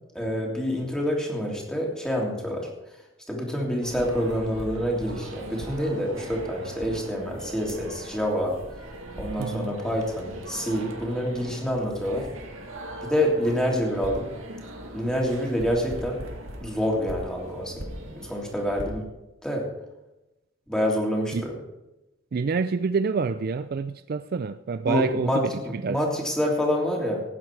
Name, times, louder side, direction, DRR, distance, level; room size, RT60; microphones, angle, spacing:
voice 1, 0.1-2.7 3.3-8.6 9.2-12.3 13.0-14.3 14.9-16.2 16.6-17.9 18.2-19.1 19.4-19.7 20.7-21.5 24.9-27.2, equal, 5° left, -2 dB, 3.1 m, -27 dB
sound 1, 3.8-18.9, right 1 dB, 80° right, 2.3 m, -39 dB
voice 2, 9.4-9.8 21.3-21.5 22.3-26.0, right 4 dB, 50° right, 12 dB, 0.4 m, -27 dB
17.5 x 9.3 x 4.7 m, 0.96 s
head